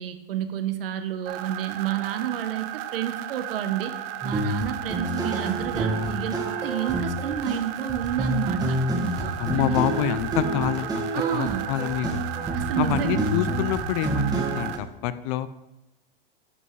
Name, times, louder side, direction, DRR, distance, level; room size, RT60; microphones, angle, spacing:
voice 1, 0.0-3.9 4.2-8.8 9.2-9.9 11.1-11.7 12.5-13.2, right 10 dB, 70° right, 9 dB, 1.0 m, -30 dB
sound 1, 1.3-14.8, right 13 dB, 35° right, 0.5 m, -35 dB
sound 2, 4.2-14.8, right 2 dB, 15° right, 1.6 m, -28 dB
voice 2, 9.4-12.3 12.8-15.5, left 12 dB, 35° left, 14 dB, 0.4 m, -27 dB
11.0 x 5.4 x 3.2 m, 0.95 s
hypercardioid pair, 115°, 30 cm